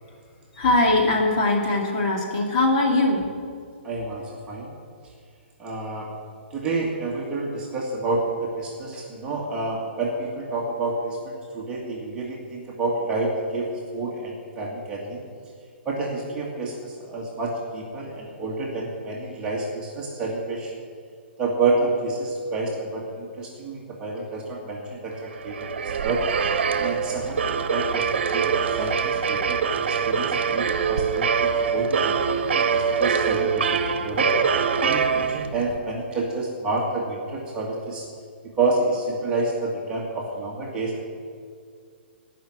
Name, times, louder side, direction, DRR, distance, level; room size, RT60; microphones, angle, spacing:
voice 1, 0.5-3.3, left 2 dB, 40° left, 0 dB, 2.6 m, -21 dB
voice 2, 3.8-4.7 5.6-6.1 6.5-15.2 15.9-20.7 21.4-26.2 26.8-34.3 34.8-38.1 38.6-41.0, right 3 dB, 15° right, -3 dB, 1.9 m, -29 dB
sound 1, 25.3-35.8, right 6 dB, 65° right, 1.1 m, -24 dB
17.5 x 6.0 x 9.1 m, 2.2 s
hypercardioid pair, 160°, 6 cm